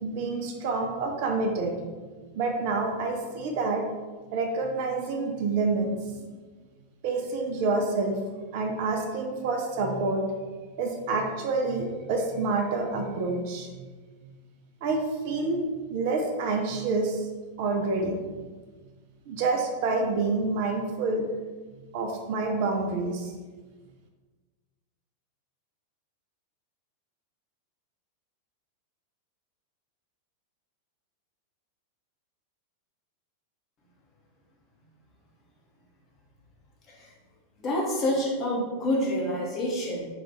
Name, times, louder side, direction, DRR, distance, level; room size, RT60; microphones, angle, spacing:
voice 1, 0.0-1.7 2.3-3.8 4.3-5.9 7.0-8.2 8.5-10.2 10.8-13.8 14.8-17.3 17.6-18.1 19.3-21.2 21.9-23.3, right 3 dB, 50° right, 2 dB, 0.4 m, -28 dB
voice 2, 37.6-40.1, left 1 dB, 30° left, -3 dB, 0.8 m, -27 dB
2.8 x 2.4 x 3.5 m, 1.4 s
figure-of-eight pair, 90°, 0 cm